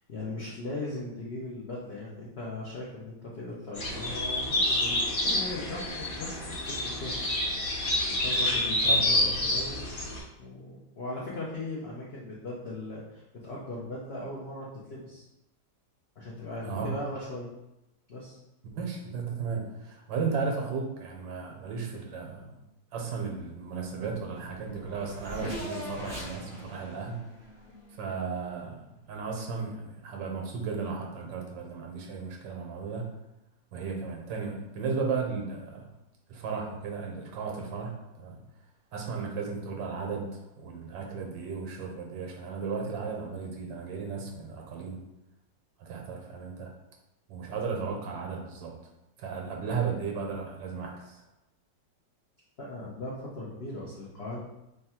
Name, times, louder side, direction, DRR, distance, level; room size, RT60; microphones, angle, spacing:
voice 1, 0.0-7.1 8.1-10.1 10.4-15.2 16.2-17.5 18.1-18.4 52.6-54.4, left 2 dB, 75° left, -5 dB, 0.5 m, -39 dB
sound 1, 3.7-10.2, left 1 dB, 50° left, 1.0 m, -28 dB
voice 2, 18.7-22.6 22.9-27.3 27.9-33.1 33.7-35.9 36.3-38.4 38.9-45.0 45.8-46.7 47.3-48.7 49.2-51.2, right 5 dB, 85° right, 1 dB, 1.4 m, -35 dB
Race car auto racing / Accelerating revving vroom, 24.1-24.2 24.4-28.4, equal, 35° right, 0.5 m, -41 dB
3.4 x 2.3 x 4.2 m, 0.90 s
omnidirectional pair, 2.0 m